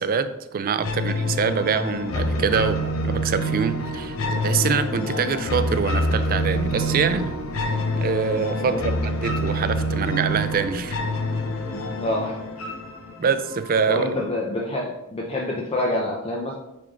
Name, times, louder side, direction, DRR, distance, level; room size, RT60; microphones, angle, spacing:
voice 1, 0.0-11.0 13.2-14.1, right 5 dB, 45° right, 11 dB, 0.4 m, -25 dB
sound 1, 0.8-13.8, equal, 80° left, 0.8 m, -26 dB
voice 2, 8.6-9.0 12.0-12.4 13.9-16.5, left 1 dB, 25° left, -1 dB, 0.6 m, -27 dB
8.8 x 3.4 x 3.7 m, 0.94 s
head